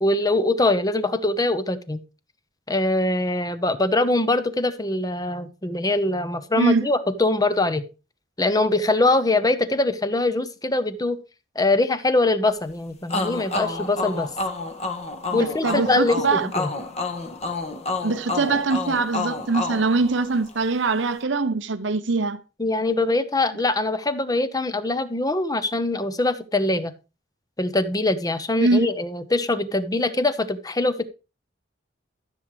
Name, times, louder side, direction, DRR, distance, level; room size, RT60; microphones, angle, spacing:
voice 1, 0.0-2.0 2.7-7.8 8.4-11.2 11.5-14.3 15.3-16.7 22.6-26.9 27.6-31.0, left 2 dB, 20° left, 0.9 m, -23 dB
voice 2, 6.5-6.9 15.3-16.5 18.0-22.4 28.6-28.9, right 3 dB, 85° right, 0.8 m, -23 dB
sound 1, 13.1-20.7, left 3 dB, 35° left, 1.6 m, -29 dB
14.0 x 7.4 x 3.2 m
head